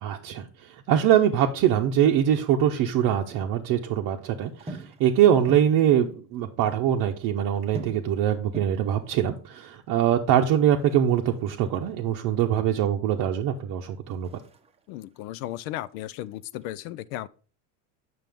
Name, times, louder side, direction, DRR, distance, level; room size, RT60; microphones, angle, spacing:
voice 1, 0.0-14.3, right 10 dB, 45° right, 0.8 m, -23 dB
sound 1, 1.5-2.7 3.0-3.9 4.4-6.4 6.7-6.8 7.0-12.9 13.3-15.9 16.2-16.7, right 1 dB, 15° right, 0.7 m, -46 dB
voice 2, 14.9-17.3, left 14 dB, 65° left, 0.5 m, -35 dB
7.6 x 6.1 x 3.5 m
supercardioid pair, 120°, 46 cm